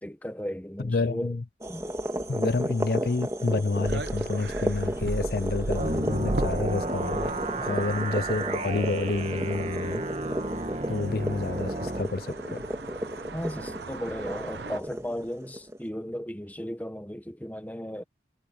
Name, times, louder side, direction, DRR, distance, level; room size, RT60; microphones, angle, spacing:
voice 1, 0.0-1.4 1.7-1.8 7.5-7.7 13.3-18.0, equal, 10° left, 1.2 m, -35 dB
voice 2, 0.8-1.4 2.3-7.3 7.6-10.0 10.9-12.6, left 3 dB, 55° left, 0.6 m, -29 dB
sound 1, 1.6-15.8, equal, 15° right, 1.8 m, -34 dB
sound 2, 3.8-14.8, right 2 dB, 70° right, 0.8 m, -38 dB
sound 3, 5.7-12.0, right 2 dB, 40° right, 2.3 m, -32 dB
head